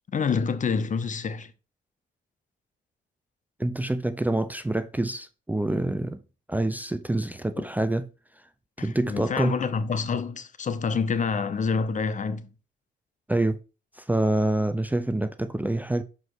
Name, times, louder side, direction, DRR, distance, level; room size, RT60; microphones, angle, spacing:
voice 1, 0.1-1.5 7.6-7.7 8.8-12.5, left 5 dB, 40° left, 0.7 m, -27 dB
voice 2, 3.6-6.2 6.5-8.1 8.8-9.5 13.3-13.6 14.0-16.0, right 1 dB, 10° right, 0.6 m, -26 dB
6.1 x 4.9 x 4.7 m
cardioid pair, 90°, 20 cm